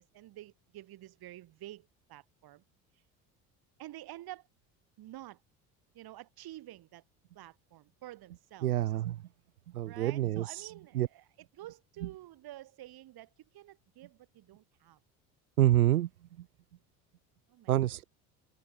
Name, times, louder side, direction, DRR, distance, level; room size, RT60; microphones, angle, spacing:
voice 1, 0.0-2.6 3.8-4.5 5.0-5.4 5.9-7.0 7.3-8.7 9.9-15.0 17.5-17.9, right 15 dB, 55° right, 7.3 m, -49 dB
voice 2, 8.6-9.2 9.7-10.7 10.9-11.1 15.6-16.1 17.7-18.0, right 13 dB, 90° right, 1.7 m, -27 dB
hypercardioid pair, 70°, 43 cm